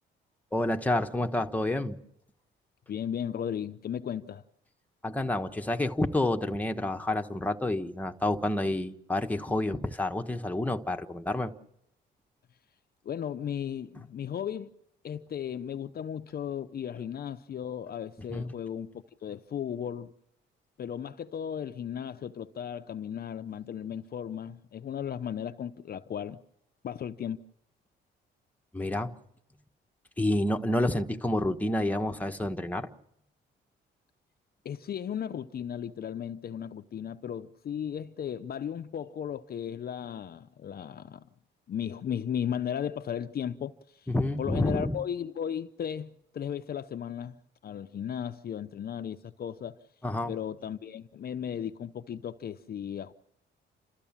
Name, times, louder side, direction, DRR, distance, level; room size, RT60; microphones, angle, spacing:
voice 1, 0.5-2.0 5.0-11.5 18.3-18.5 28.7-29.1 30.2-32.9 44.1-45.0 50.0-50.3, left 1 dB, 10° left, 1.3 m, -29 dB
voice 2, 2.9-4.4 13.0-14.7 15.0-20.1 20.8-26.4 26.8-27.4 34.6-41.3 41.7-44.1 44.4-47.4 47.6-49.8 50.3-53.1, left 9 dB, 50° left, 0.7 m, -35 dB
29.5 x 14.0 x 7.3 m
cardioid pair, 90°, 20 cm